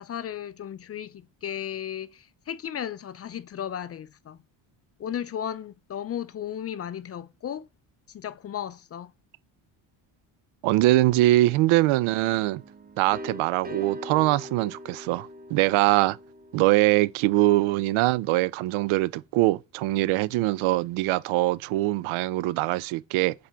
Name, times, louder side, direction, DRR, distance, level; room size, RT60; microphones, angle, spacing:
voice 1, 0.0-4.4 5.0-7.7 8.1-9.1, left 9 dB, 35° left, 0.4 m, -35 dB
voice 2, 10.6-12.6 13.0-16.2 16.5-23.3, right 17 dB, 80° right, 0.5 m, -23 dB
sound 1, 12.0-17.7, equal, 20° right, 0.7 m, -43 dB
7.6 x 4.2 x 3.4 m
cardioid pair, 100°, 48 cm